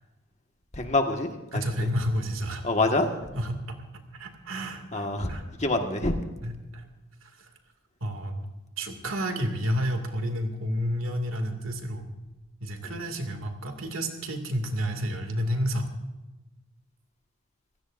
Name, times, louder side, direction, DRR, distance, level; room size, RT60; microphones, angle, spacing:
voice 1, 0.8-1.6 2.6-3.1 4.9-5.3 5.6-6.1, left 2 dB, 35° left, 4 dB, 1.6 m, -25 dB
voice 2, 1.5-2.6 3.3-3.8 4.2-5.4 6.4-6.8 8.0-8.4 8.8-12.1 12.6-15.9, equal, 85° right, 4 dB, 2.4 m, -30 dB
26.5 x 16.5 x 2.6 m, 1.1 s
head